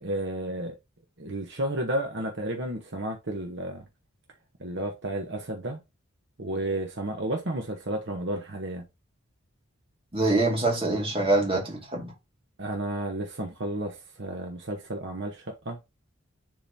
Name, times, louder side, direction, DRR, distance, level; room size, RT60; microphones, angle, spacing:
voice 1, 0.0-0.7 1.2-3.8 4.6-5.8 6.4-8.8 12.6-15.8, right 1 dB, 55° right, 1.1 m, -32 dB
voice 2, 10.1-12.1, right 2 dB, 25° right, 2.2 m, -25 dB
10.5 x 3.9 x 2.8 m
head